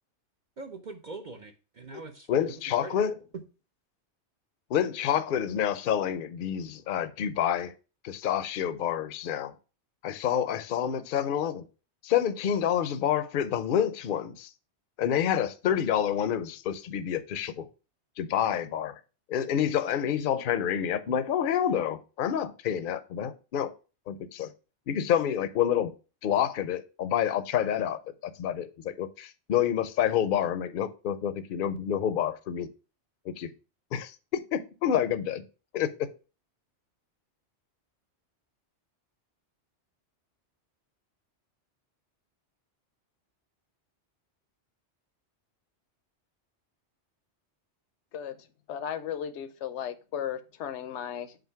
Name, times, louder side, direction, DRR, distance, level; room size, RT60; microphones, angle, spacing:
voice 1, 0.6-3.0, right 3 dB, 50° right, 4 dB, 0.8 m, -43 dB
voice 2, 2.3-3.2 4.7-7.7 8.0-9.5 10.0-11.6 12.0-14.5 15.0-17.7 18.2-19.0 19.3-23.7 24.1-24.5 24.9-25.9 26.2-32.7 33.3-33.5 33.9-35.4 35.7-35.9, left 9 dB, 55° left, 12 dB, 0.7 m, -28 dB
voice 3, 48.1-51.4, left 9 dB, 80° left, 11 dB, 1.0 m, -36 dB
7.7 x 2.6 x 5.6 m, 0.33 s
omnidirectional pair, 1.2 m